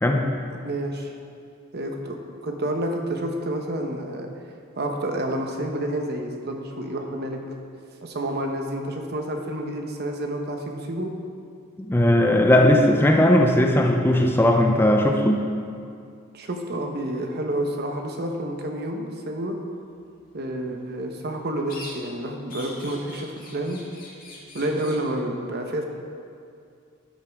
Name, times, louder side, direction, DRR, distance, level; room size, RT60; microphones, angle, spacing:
voice 1, 0.6-1.1 1.7-4.3 4.8-7.4 8.0-11.1 16.3-19.6 20.3-23.8 24.5-25.9, right 1 dB, 55° right, 3 dB, 1.0 m, -29 dB
voice 2, 11.8-15.4, left 1 dB, 10° left, 3 dB, 0.5 m, -18 dB
sound 1, 21.7-22.2 22.5-25.1, left 1 dB, 45° left, 2.1 m, -42 dB
13.0 x 7.6 x 3.6 m, 2.4 s
head